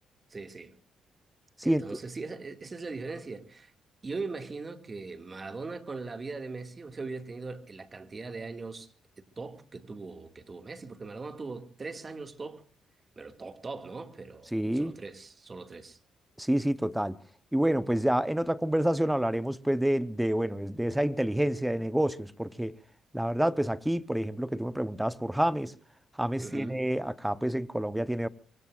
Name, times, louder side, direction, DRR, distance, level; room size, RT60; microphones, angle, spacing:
voice 1, 0.3-0.7 1.6-3.7 4.0-8.9 9.4-12.6 13.2-16.0 26.4-26.8, right 3 dB, 30° right, 2.2 m, -40 dB
voice 2, 14.5-14.9 16.4-17.2 17.5-22.7 23.1-25.7 26.2-28.3, right 1 dB, 5° right, 0.9 m, -28 dB
24.5 x 23.5 x 2.5 m
cardioid pair, 90°, 0 cm